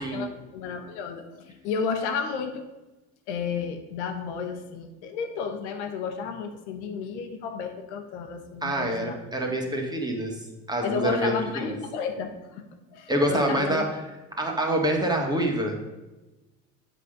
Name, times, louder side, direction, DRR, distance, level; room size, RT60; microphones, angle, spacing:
voice 1, 0.0-2.7 3.3-9.1 10.8-12.6 12.9-13.8, left 5 dB, 85° left, 5 dB, 1.1 m, -32 dB
voice 2, 8.6-10.4 10.7-11.8 13.1-13.8 14.4-15.8, right 1 dB, 10° right, 1 dB, 1.9 m, -26 dB
8.0 x 4.2 x 6.5 m, 1.1 s
supercardioid pair, 90°, 34 cm